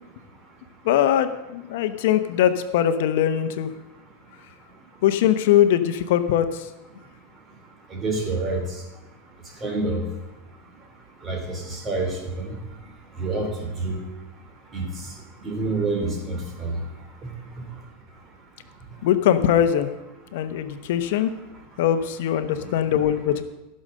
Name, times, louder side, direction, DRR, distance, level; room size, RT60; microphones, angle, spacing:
voice 1, 0.8-3.7 5.0-6.5 19.0-19.9 20.3-21.3 21.8-23.4, left 10 dB, 70° left, 10 dB, 0.8 m, -21 dB
voice 2, 7.9-8.6 9.6-10.0 11.2-12.1 12.4-12.5 13.2-13.5 13.8-14.0 14.7-14.8 15.4-16.7, right 3 dB, 20° right, 2 dB, 2.9 m, -27 dB
15.0 x 6.5 x 6.6 m, 0.98 s
supercardioid pair, 145°, 0 cm